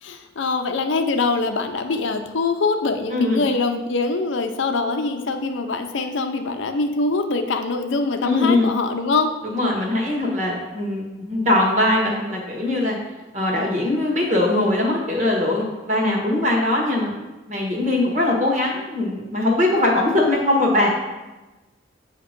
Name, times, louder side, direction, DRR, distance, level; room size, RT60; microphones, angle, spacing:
voice 1, 0.0-9.3, left 3 dB, 70° left, 6 dB, 0.5 m, -23 dB
voice 2, 3.1-3.5 8.2-8.7 9.4-13.0 13.3-17.1 17.5-20.9, left 2 dB, 35° right, -1 dB, 1.3 m, -21 dB
7.7 x 2.9 x 5.1 m, 1.1 s
head